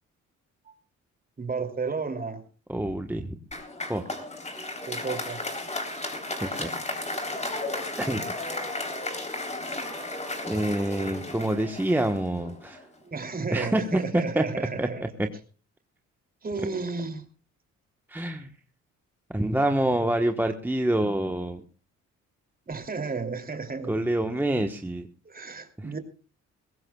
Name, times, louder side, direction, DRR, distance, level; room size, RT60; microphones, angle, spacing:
voice 1, 1.4-2.4 4.9-5.4 13.1-15.0 16.4-17.2 22.7-24.0 25.2-26.0, right 4 dB, 30° right, 6 dB, 2.9 m, -32 dB
voice 2, 2.7-3.3 3.9-4.1 6.4-6.7 7.0-7.3 8.0-8.2 10.4-12.9 13.5-15.1 18.1-18.5 19.3-21.6 23.9-25.1 25.8-25.9, right 1 dB, 5° right, 4 dB, 1.2 m, -27 dB
Applause, 3.5-12.8, left 2 dB, 20° left, 3.6 m, -34 dB
22.0 x 17.0 x 2.3 m, 0.36 s
cardioid pair, 90°, 30 cm